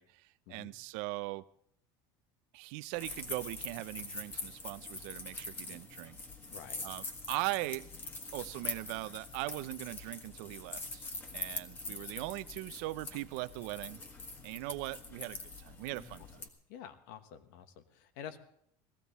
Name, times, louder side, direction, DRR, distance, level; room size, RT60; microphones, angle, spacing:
voice 1, 0.0-1.4 2.5-6.2 6.8-7.9 8.3-11.1 11.3-14.0 14.4-16.4, right 20 dB, 65° right, 0.5 m, -40 dB
sound 1, 2.9-16.5, left 3 dB, 20° left, 1.5 m, -44 dB
voice 2, 6.5-6.9 16.2-16.3 16.7-18.4, left 9 dB, 75° left, 1.4 m, -48 dB
17.5 x 14.5 x 4.1 m
cardioid pair, 160°, 10 cm